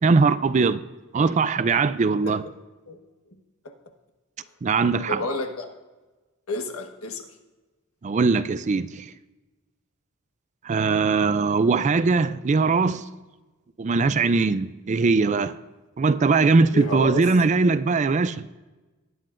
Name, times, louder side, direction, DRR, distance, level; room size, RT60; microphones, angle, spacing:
voice 1, 0.0-0.8 1.1-2.4 4.6-5.2 8.0-9.1 10.6-13.1 13.8-15.6 16.0-18.5, right 4 dB, 35° right, 0.4 m, -21 dB
voice 2, 5.1-5.7 6.5-7.3 16.7-17.2, left 1 dB, 80° left, 1.3 m, -30 dB
19.0 x 9.4 x 2.5 m
head